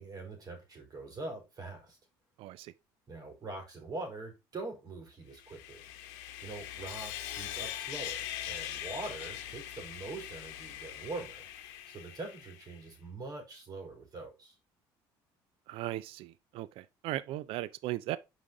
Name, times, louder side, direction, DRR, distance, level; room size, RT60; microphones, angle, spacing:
voice 1, 0.0-2.0 3.1-5.8 6.4-11.4 11.9-14.5, right 2 dB, 40° right, 3.9 m, -43 dB
voice 2, 2.4-2.7 15.7-18.2, right 15 dB, 70° right, 0.4 m, -37 dB
Sawing, 5.3-12.8, left 12 dB, 85° left, 0.9 m, -42 dB
6.0 x 5.1 x 3.7 m
supercardioid pair, 90°, 10 cm